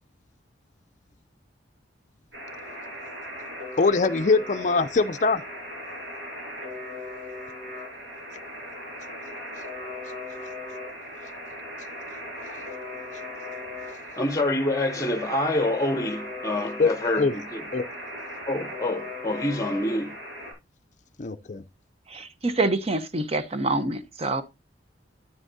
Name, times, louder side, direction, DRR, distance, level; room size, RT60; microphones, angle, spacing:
Alarm, 2.3-20.5, left 1 dB, 80° right, 6.5 m, -38 dB
voice 1, 3.8-5.4 16.8-16.9 17.2-17.3 17.7-17.8 21.2-21.6, left 4 dB, 40° left, 0.5 m, -22 dB
voice 2, 14.2-17.6 18.5-20.2, left 1 dB, 20° left, 0.8 m, -27 dB
voice 3, 22.1-24.4, right 2 dB, 35° right, 0.9 m, -26 dB
9.8 x 9.1 x 2.7 m
head